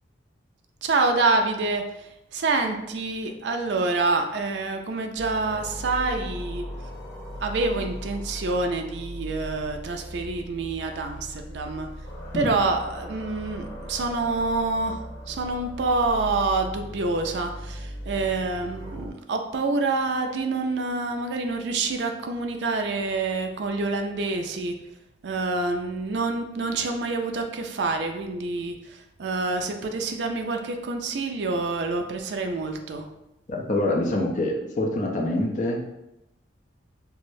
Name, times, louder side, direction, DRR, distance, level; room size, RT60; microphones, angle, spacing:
voice 1, 0.8-6.6 7.4-11.9 12.3-15.0 15.3-24.7 25.2-33.0, right 3 dB, 65° right, 4 dB, 0.4 m, -27 dB
sound 1, 5.2-19.1, equal, 70° left, 0.8 m, -38 dB
voice 2, 33.5-35.9, left 1 dB, 40° left, 0 dB, 0.5 m, -25 dB
4.7 x 2.0 x 2.6 m, 0.88 s
head